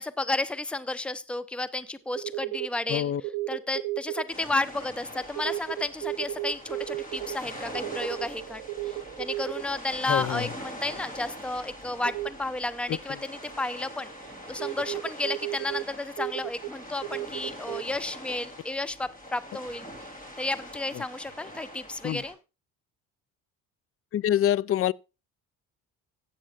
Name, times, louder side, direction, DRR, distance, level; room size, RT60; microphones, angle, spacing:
voice 1, 0.0-3.1 3.5-8.6 8.9-14.1 14.5-19.9 20.4-22.4, left 2 dB, 5° left, 0.8 m, -32 dB
sound 1, 1.8-1.9 2.1-4.2 5.4-10.1 12.1-12.3 13.3-15.8 16.2-16.7 17.0-17.8, right 17 dB, 70° right, 0.9 m, -34 dB
voice 2, 2.9-3.2 10.1-10.5 12.9-13.0 20.9-21.0 22.0-22.2 24.1-24.9, left 11 dB, 35° left, 0.4 m, -25 dB
sound 2, 4.3-22.3, equal, 20° left, 3.3 m, -43 dB
16.0 x 8.2 x 2.5 m
hypercardioid pair, 60°, 42 cm